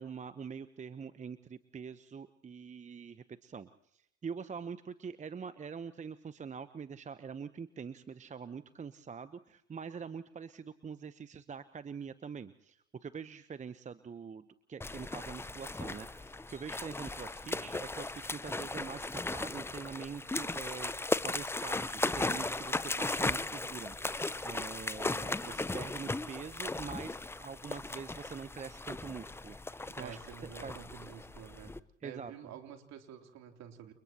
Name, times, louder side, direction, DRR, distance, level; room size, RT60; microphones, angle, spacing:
voice 1, 0.0-30.8 32.0-32.3, right 6 dB, 20° right, 13 dB, 1.0 m, -45 dB
sound 1, 14.8-31.8, left 2 dB, 5° left, 0.8 m, -37 dB
voice 2, 30.0-31.8 32.0-33.9, right 8 dB, 50° right, 4 dB, 3.5 m, -49 dB
30.0 x 29.5 x 3.0 m, 0.74 s
hypercardioid pair, 70°, 34 cm